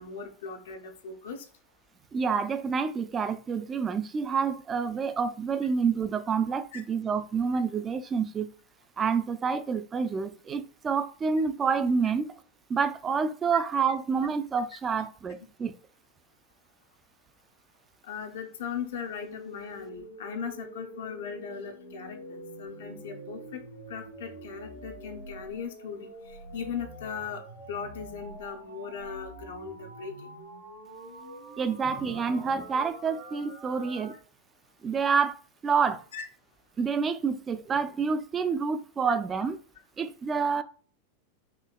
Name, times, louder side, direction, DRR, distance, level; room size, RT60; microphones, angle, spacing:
voice 1, 0.0-1.4 6.7-6.8 13.5-13.6 18.0-23.6 23.9-30.3 36.1-36.2 39.1-39.2, left 6 dB, 65° left, 0.6 m, -38 dB
voice 2, 2.1-8.5 9.0-12.3 12.7-15.7 31.6-34.2 34.8-35.4 35.6-36.0 36.8-39.6 40.0-40.6, right 5 dB, 25° right, 0.4 m, -28 dB
sound 1, 19.1-34.1, right 1 dB, 70° right, 1.5 m, -45 dB
4.4 x 2.8 x 2.2 m
figure-of-eight pair, 90°, 0 cm